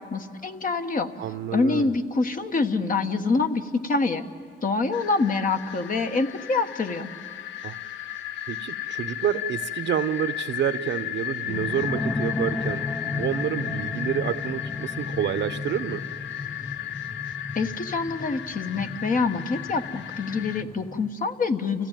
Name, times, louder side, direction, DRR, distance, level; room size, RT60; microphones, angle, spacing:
voice 1, 0.0-1.1 1.5-4.2 4.6-7.1 17.5-21.9, left 4 dB, 45° left, 7 dB, 1.3 m, -26 dB
voice 2, 1.2-2.0 7.6-7.8 8.5-16.0, right 9 dB, 65° right, 13 dB, 0.8 m, -29 dB
sound 1, 4.9-20.6, left 12 dB, 70° left, 0.7 m, -35 dB
sound 2, 11.5-21.1, left 2 dB, 10° left, 0.5 m, -34 dB
29.5 x 15.5 x 9.0 m, 2.6 s
cardioid pair, 90°, 20 cm